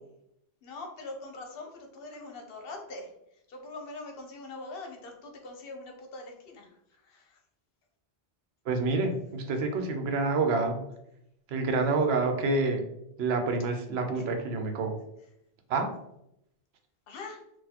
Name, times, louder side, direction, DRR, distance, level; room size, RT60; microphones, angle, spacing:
voice 1, 0.6-3.1 3.5-6.7 7.1-7.3 17.1-17.4, left 2 dB, 70° left, 2 dB, 0.9 m, -42 dB
voice 2, 8.7-10.8 11.5-12.8 13.2-15.0 15.7-15.9, right 3 dB, 80° right, 5 dB, 0.8 m, -28 dB
3.9 x 2.3 x 2.8 m, 0.80 s
omnidirectional pair, 1.0 m